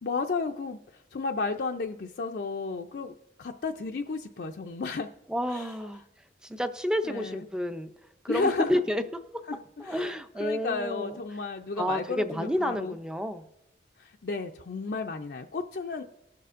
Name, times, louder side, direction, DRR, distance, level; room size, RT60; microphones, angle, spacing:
voice 1, 0.0-5.1 5.5-5.7 7.0-7.4 8.3-8.8 9.5-13.0 14.0-16.0, left 4 dB, 60° left, 3 dB, 0.4 m, -33 dB
voice 2, 5.3-6.0 6.4-7.9 8.2-9.0 9.8-11.2 11.8-13.4, equal, 5° right, 9 dB, 0.4 m, -30 dB
19.5 x 6.7 x 2.5 m, 0.86 s
head